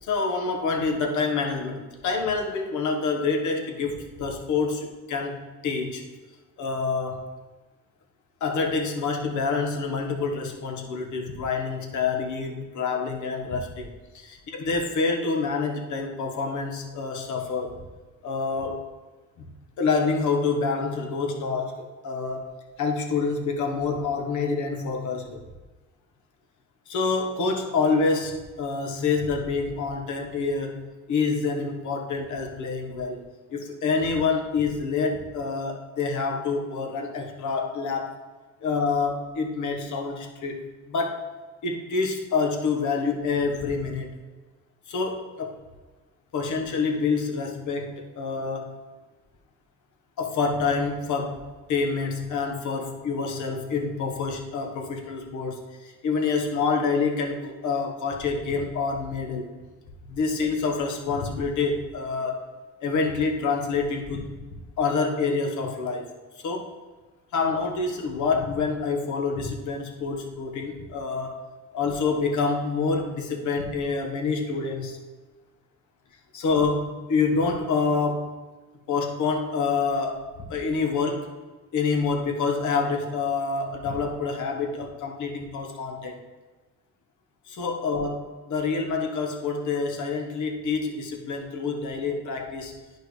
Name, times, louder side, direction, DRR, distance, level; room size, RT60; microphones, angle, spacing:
voice 1, 0.0-6.0 6.6-7.2 8.4-17.8 18.2-18.8 19.4-19.5 19.8-22.5 22.8-25.4 26.9-33.2 33.5-38.1 38.6-41.3 41.6-44.1 44.9-45.6 46.3-48.7 50.2-59.5 60.1-62.5 62.8-66.7 67.3-71.4 71.7-75.0 76.3-78.3 78.9-81.3 81.7-86.2 87.4-88.2 88.5-92.8, left 4 dB, 75° left, 2 dB, 1.3 m, -27 dB
10.5 x 4.4 x 3.3 m, 1.3 s
cardioid pair, 90°, 30 cm